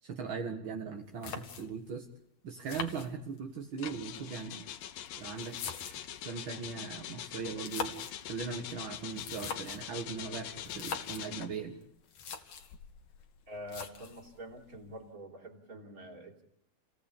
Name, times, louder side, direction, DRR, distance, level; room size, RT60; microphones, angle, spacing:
voice 1, 0.0-2.1 2.4-4.7 5.2-5.6 6.2-11.8, right 5 dB, 50° right, 3 dB, 1.5 m, -39 dB
sound 1, 0.8-0.9 1.2-1.9 2.7-3.6 4.5-6.2 7.5-8.2 9.1-9.9 10.6-11.3 11.8-11.9 12.1-12.8 13.7-14.3, left 6 dB, 50° left, 2.7 m, -42 dB
sound 2, 3.8-11.7 12.5-15.0, left 11 dB, 75° left, 2.9 m, -44 dB
voice 2, 13.5-16.4, equal, 25° right, 2 dB, 3.5 m, -46 dB
29.5 x 17.0 x 8.5 m, 0.72 s
omnidirectional pair, 4.3 m